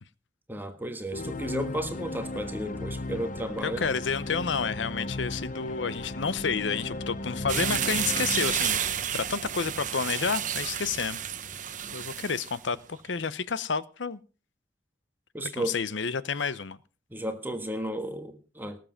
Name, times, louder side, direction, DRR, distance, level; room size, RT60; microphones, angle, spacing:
voice 1, 0.5-3.9 15.3-15.7 17.1-18.8, right 1 dB, 10° right, 1.5 m, -33 dB
sound 1, 1.1-9.6, left 2 dB, 45° left, 0.8 m, -36 dB
voice 2, 3.6-8.8 9.1-11.2 11.9-14.2 15.5-16.8, left 5 dB, 90° left, 0.8 m, -30 dB
sound 2, 7.5-12.6, right 9 dB, 45° right, 0.9 m, -31 dB
19.0 x 7.7 x 5.8 m
head